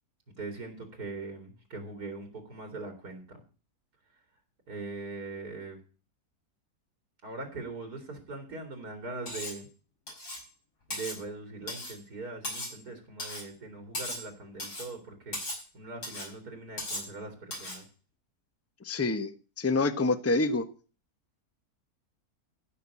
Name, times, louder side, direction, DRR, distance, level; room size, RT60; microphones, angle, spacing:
voice 1, 0.4-3.4 4.7-5.8 7.2-9.7 10.9-17.8, right 3 dB, 80° right, 6 dB, 3.2 m, -41 dB
Cutlery silverware, 9.3-9.6 10.1-10.5 10.9-11.2 11.7-12.0 12.4-12.8 13.2-13.5 13.9-14.3 14.6-14.9 15.3-15.6 16.0-16.3 16.8-17.1 17.5-17.8, left 1 dB, 85° left, 6.5 m, -37 dB
voice 2, 18.8-20.7, left 3 dB, 10° left, 11 dB, 0.8 m, -27 dB
15.0 x 6.1 x 8.4 m, 0.37 s
omnidirectional pair, 1.6 m